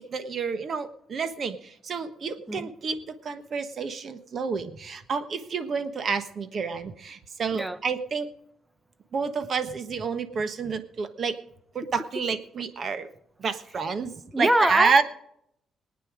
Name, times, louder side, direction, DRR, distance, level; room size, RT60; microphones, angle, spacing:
voice 1, 0.0-8.3 9.1-11.4 11.7-13.1 13.4-15.0, right 5 dB, 50° right, 1.2 m, -29 dB
voice 2, 14.3-15.0, right 1 dB, 5° right, 0.8 m, -23 dB
19.5 x 9.3 x 5.0 m
cardioid pair, 90°, 0 cm